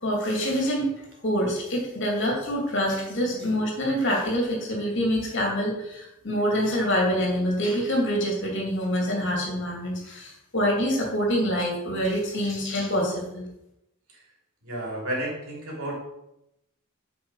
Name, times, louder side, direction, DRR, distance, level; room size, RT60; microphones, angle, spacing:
voice 1, 0.0-0.9 1.2-13.4, equal, 55° left, -1 dB, 2.6 m, -26 dB
voice 2, 14.6-16.0, right 1 dB, 85° right, -2 dB, 3.1 m, -31 dB
8.6 x 5.3 x 4.8 m, 0.86 s
head